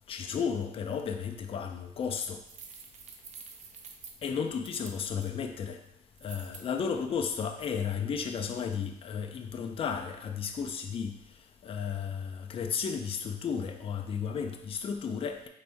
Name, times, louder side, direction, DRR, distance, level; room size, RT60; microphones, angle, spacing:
voice 1, 0.1-2.4 4.2-5.8 6.2-11.1 11.6-15.5, left 6 dB, 35° left, 5 dB, 0.4 m, -33 dB
sound 1, 2.4-5.3 6.2-6.6, right 5 dB, 45° right, 0.5 m, -48 dB
4.5 x 3.2 x 2.6 m, 0.80 s
cardioid pair, 110°, 17 cm